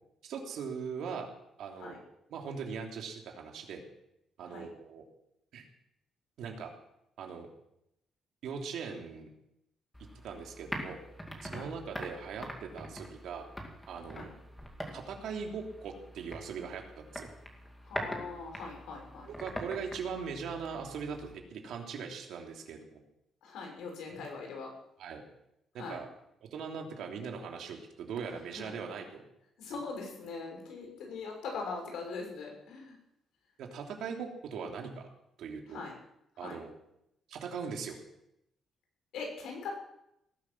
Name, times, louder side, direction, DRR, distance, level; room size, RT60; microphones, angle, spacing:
voice 1, 0.2-1.3 1.6-3.8 4.4-5.0 5.5-5.6 6.4-6.7 7.2-7.5 8.4-9.3 10.2-11.0 11.4-13.5 13.9-14.3 14.9-17.3 19.3-23.0 24.1-24.3 25.0-25.2 25.7-26.1 26.5-29.2 33.6-35.1 35.4-35.8 36.4-36.7 37.3-38.0, right 6 dB, 70° right, 2 dB, 3.1 m, -40 dB
sound 1, 9.9-21.4, equal, 5° left, 2.4 m, -44 dB
voice 2, 17.8-19.3 23.4-24.7 25.8-26.0 28.5-28.8 29.6-33.0 35.7-35.9 36.4-36.6 39.1-39.7, left 4 dB, 80° left, 1 dB, 6.2 m, -41 dB
18.5 x 11.5 x 6.1 m, 0.80 s
cardioid pair, 160°, 0 cm